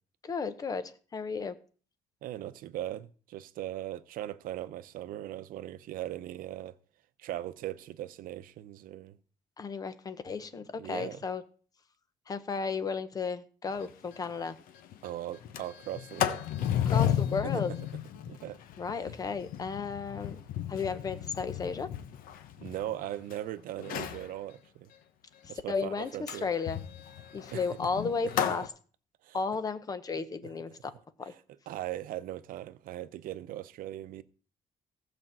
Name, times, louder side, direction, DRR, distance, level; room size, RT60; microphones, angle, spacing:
voice 1, 0.2-1.5 9.6-11.4 12.3-14.6 16.9-17.7 18.8-20.4 20.7-21.9 25.4-26.8 27.3-28.7 29.3-30.9 31.2-31.3, left 5 dB, 25° left, 0.8 m, -34 dB
voice 2, 2.2-6.8 7.2-9.2 10.8-11.2 15.0-16.4 17.5-17.8 18.3-18.6 19.0-19.1 22.6-24.9 25.5-26.5 27.5-27.6 29.2-29.4 31.7-34.2, right 13 dB, 80° right, 0.7 m, -39 dB
Sliding door, 13.8-13.9 14.2-14.3 14.7-15.0 15.3-23.3 23.8-24.3 26.3-28.7, left 10 dB, 90° left, 1.0 m, -34 dB
15.0 x 5.1 x 7.5 m
cardioid pair, 180°, 14 cm